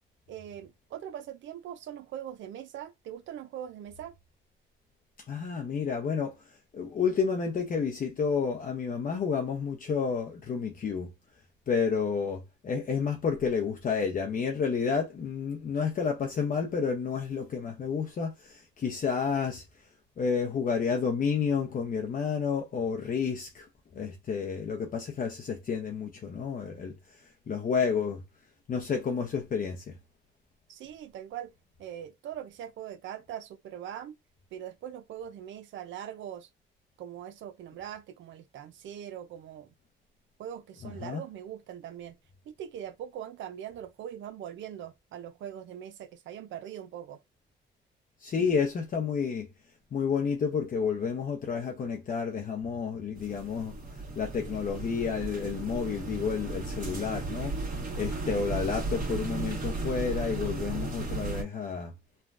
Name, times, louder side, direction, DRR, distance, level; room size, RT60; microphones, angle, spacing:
voice 1, 0.3-4.1 30.7-31.5 31.8-34.2 34.5-36.5 37.0-39.7 40.4-42.2 42.5-47.2, right 10 dB, 75° right, 0.5 m, -41 dB
voice 2, 5.3-6.3 6.7-11.1 11.7-19.6 20.2-23.7 23.9-27.2 27.5-28.2 28.7-30.0 41.0-41.2 48.2-49.5 49.9-53.8 54.2-61.9, left 6 dB, 45° left, 0.7 m, -30 dB
sound 1, 53.2-61.4, right 3 dB, 45° right, 1.5 m, -35 dB
3.2 x 2.2 x 2.5 m
cardioid pair, 90°, 20 cm